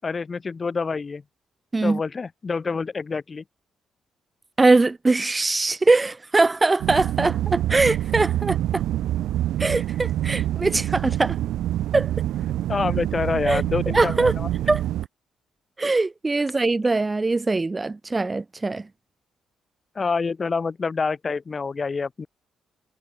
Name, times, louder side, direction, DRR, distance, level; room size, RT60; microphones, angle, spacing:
voice 1, 0.0-1.2 1.8-3.4 12.7-14.5 20.0-22.3, left 4 dB, 35° left, 5.3 m, -27 dB
voice 2, 4.6-8.8 9.6-11.4 11.9-12.1 13.5-13.6 13.9-14.3 14.7-14.8 15.8-18.9, right 3 dB, 20° right, 1.9 m, -21 dB
sound 1, 6.8-15.1, right 13 dB, 80° right, 0.5 m, -26 dB
cardioid pair, 90°, 0 cm